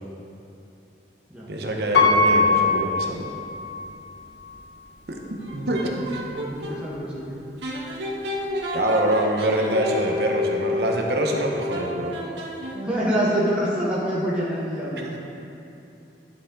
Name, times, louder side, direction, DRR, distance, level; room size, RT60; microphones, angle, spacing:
voice 1, 1.5-3.3 5.1-5.2 5.5-6.2 8.7-12.1 15.0-15.2, right 1 dB, 65° right, 0 dB, 1.0 m, -25 dB
Piano, 1.9-3.9 4.5-4.6, left 3 dB, 70° left, 1.1 m, -20 dB
sound 1, 5.4-6.8 7.6-13.1, left 2 dB, 90° right, 1.5 m, -30 dB
voice 2, 6.3-7.3 12.8-15.1, equal, 5° right, -8 dB, 1.4 m, -26 dB
11.0 x 7.1 x 3.9 m, 2.7 s
head